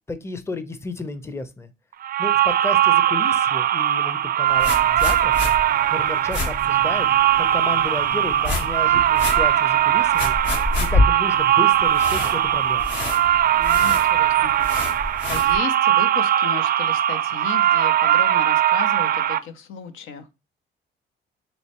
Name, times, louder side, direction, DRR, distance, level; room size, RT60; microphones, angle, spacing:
voice 1, 0.1-1.7 2.2-5.3 5.9-7.1 7.4-10.4 10.8-12.9, left 2 dB, 15° left, 0.6 m, -32 dB
sound 1, 2.0-19.4, right 11 dB, 50° right, 0.4 m, -20 dB
sound 2, 4.5-15.6, left 2 dB, 65° left, 1.4 m, -28 dB
voice 2, 13.6-14.7 15.3-20.3, left 6 dB, 85° left, 0.7 m, -34 dB
4.2 x 3.4 x 2.8 m
cardioid pair, 90°, 20 cm